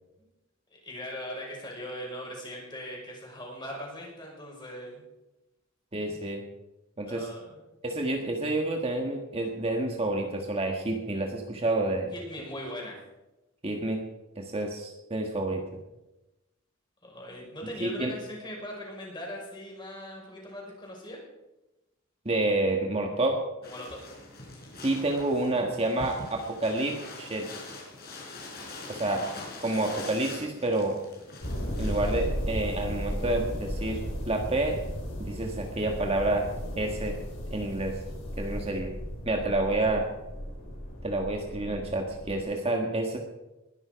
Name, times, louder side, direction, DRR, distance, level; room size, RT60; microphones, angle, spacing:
voice 1, 0.7-5.0 7.0-7.6 12.1-13.0 17.0-21.2 23.6-24.1, equal, 20° left, -1 dB, 5.6 m, -40 dB
voice 2, 5.9-6.4 7.0-7.3 7.8-12.1 13.6-14.0 14.4-15.6 17.8-18.1 22.3-23.4 24.8-27.5 28.9-29.2 29.6-31.0 31.8-34.8 35.2-36.5 36.8-37.2 37.5-37.9 38.4-38.9 39.3-40.1 41.0-43.2, right 2 dB, 30° right, 2 dB, 1.6 m, -29 dB
sound 1, 23.6-32.3, left 2 dB, 50° left, 5.1 m, -43 dB
sound 2, 31.4-42.4, equal, 65° left, 4.9 m, -35 dB
20.5 x 11.5 x 5.2 m, 0.99 s
head